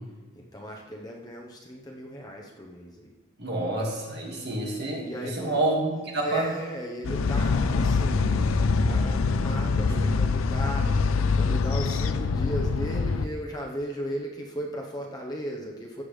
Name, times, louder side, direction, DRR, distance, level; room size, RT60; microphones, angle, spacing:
voice 1, 0.3-3.1 5.0-5.6 6.2-16.0, equal, 20° left, -1 dB, 1.0 m, -36 dB
voice 2, 3.4-6.5, right 2 dB, 55° right, -1 dB, 2.1 m, -28 dB
sound 1, 7.0-13.3, left 4 dB, 85° left, 0.5 m, -24 dB
13.5 x 8.2 x 3.3 m, 1.3 s
head